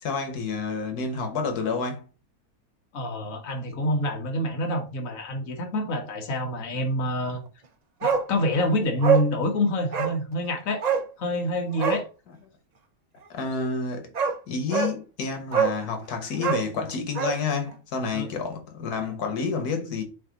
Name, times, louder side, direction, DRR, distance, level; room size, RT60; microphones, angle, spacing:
voice 1, 0.0-2.0 13.3-14.1 14.5-20.0, left 4 dB, 85° left, 1.7 m, -29 dB
voice 2, 2.9-7.4 8.0-10.8 11.2-12.1 18.1-18.3 19.0-19.1, left 1 dB, 65° left, 1.6 m, -27 dB
Bark, 8.0-8.3 8.6-8.7 9.0-9.3 9.9-10.2 10.8-11.1 11.7-12.0 13.6-13.7 14.1-14.4 14.7-15.0 15.5-15.8 16.3-17.4 17.7-17.8, right 7 dB, 50° right, 0.5 m, -24 dB
7.4 x 2.7 x 5.0 m
omnidirectional pair, 1.6 m